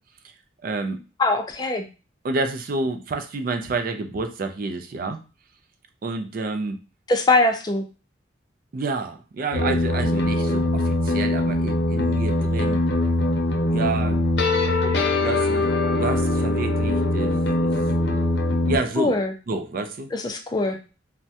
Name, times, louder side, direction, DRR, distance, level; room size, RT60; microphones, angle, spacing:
voice 1, 0.6-1.0 2.2-5.2 6.0-6.8 8.7-12.8 13.7-14.2 15.2-17.7 18.7-20.1, right 3 dB, 50° right, 7 dB, 0.4 m, -29 dB
voice 2, 1.2-1.9 7.1-7.8 19.0-19.3 20.1-20.8, left 2 dB, 20° left, 5 dB, 0.4 m, -22 dB
sound 1, 9.5-18.8, left 1 dB, 65° left, 0.6 m, -22 dB
3.4 x 2.1 x 2.7 m, 0.33 s
head